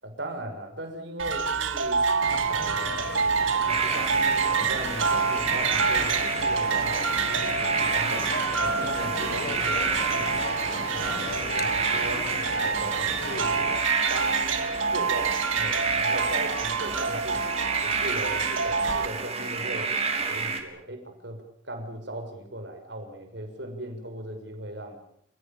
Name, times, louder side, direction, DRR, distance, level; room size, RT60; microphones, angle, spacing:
voice 1, 0.0-2.0 2.5-3.2 3.7-8.3 8.6-10.3 10.9-12.3 12.6-13.7 14.1-17.5 17.8-19.9 20.3-25.0, right 1 dB, 60° right, 5 dB, 6.2 m, -38 dB
sound 1, 1.2-19.1, right 5 dB, 75° right, 2.6 m, -27 dB
sound 2, 2.2-13.8, left 3 dB, 50° left, 1.0 m, -37 dB
sound 3, 3.7-20.6, right 4 dB, 30° right, 3.3 m, -30 dB
29.5 x 17.0 x 8.8 m, 0.68 s
head